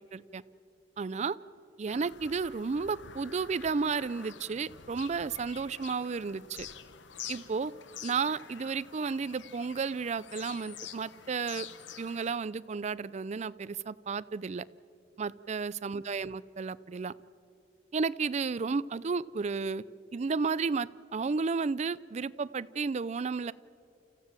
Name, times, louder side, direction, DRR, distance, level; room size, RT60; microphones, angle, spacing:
voice 1, 0.1-0.4 1.0-1.4 1.8-6.7 7.3-7.7 8.0-11.7 12.0-14.7 15.2-17.1 17.9-19.8 20.1-23.5, right 5 dB, 40° right, 18 dB, 0.4 m, -32 dB
Bird vocalization bird call bird song, 1.9-12.4, left 8 dB, 85° left, 0.9 m, -48 dB
29.5 x 15.0 x 7.4 m, 2.7 s
head